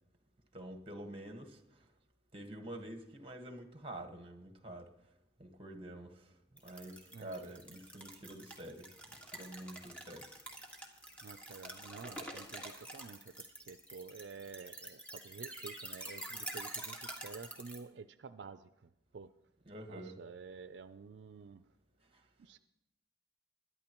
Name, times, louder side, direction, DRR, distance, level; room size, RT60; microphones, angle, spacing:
voice 1, 0.5-1.8 2.3-4.9 5.4-6.3 6.6-8.9 9.3-10.3 19.6-20.2, right 1 dB, 30° right, 1.4 m, -47 dB
sound 1, 6.6-17.8, right 1 dB, 5° left, 1.6 m, -47 dB
voice 2, 11.2-13.3 13.7-18.7 19.1-19.3 19.9-21.6 22.4-22.6, right 5 dB, 70° right, 0.4 m, -50 dB
22.0 x 11.0 x 3.0 m
head